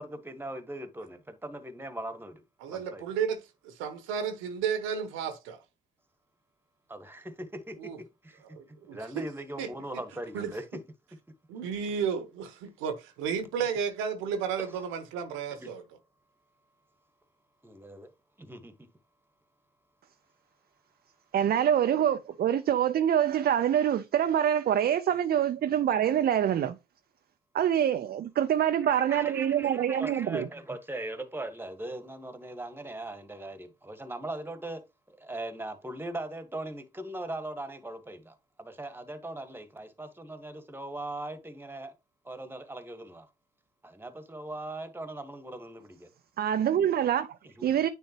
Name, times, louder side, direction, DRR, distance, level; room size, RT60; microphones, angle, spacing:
voice 1, 0.0-2.4 2.7-3.0 6.9-10.8 14.6-14.9 15.5-15.7 17.6-18.1 18.4-18.7 28.9-34.8 35.1-41.9 42.2-43.3 43.8-46.1 47.4-47.7, right 1 dB, 10° right, 1.4 m, -40 dB
voice 2, 2.6-5.6 7.8-8.0 8.5-9.2 9.6-9.7 10.3-10.5 11.5-15.8, right 7 dB, 75° right, 1.1 m, -33 dB
voice 3, 21.3-26.8 27.5-30.5 46.4-47.3 47.6-47.9, right 10 dB, 50° right, 0.6 m, -25 dB
9.1 x 4.3 x 2.9 m
hypercardioid pair, 45°, 21 cm